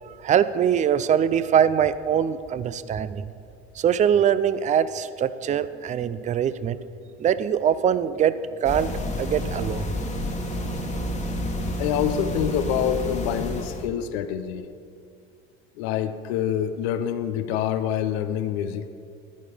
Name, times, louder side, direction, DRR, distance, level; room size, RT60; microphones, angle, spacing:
voice 1, 0.0-3.3 3.8-6.8 7.2-8.9 9.2-9.9, right 8 dB, 25° right, 14 dB, 0.4 m, -23 dB
sound 1, 8.6-13.9, left 1 dB, 20° left, 1.4 m, -29 dB
voice 2, 11.8-14.7 15.8-18.9, left 9 dB, 75° left, 11 dB, 0.7 m, -26 dB
11.5 x 9.2 x 5.0 m, 2.4 s
hypercardioid pair, 90°, 32 cm